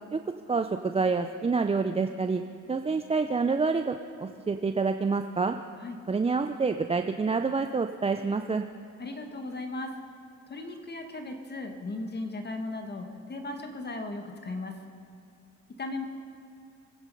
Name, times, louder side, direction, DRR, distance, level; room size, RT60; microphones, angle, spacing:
voice 1, 0.5-2.4 2.7-5.5 6.1-8.6, right 4 dB, 20° right, 7 dB, 0.5 m, -27 dB
voice 2, 9.0-9.9 10.5-14.8 15.8-16.1, left 2 dB, 35° left, 5 dB, 1.5 m, -36 dB
23.5 x 9.5 x 5.4 m, 2.6 s
cardioid pair, 90°, 30 cm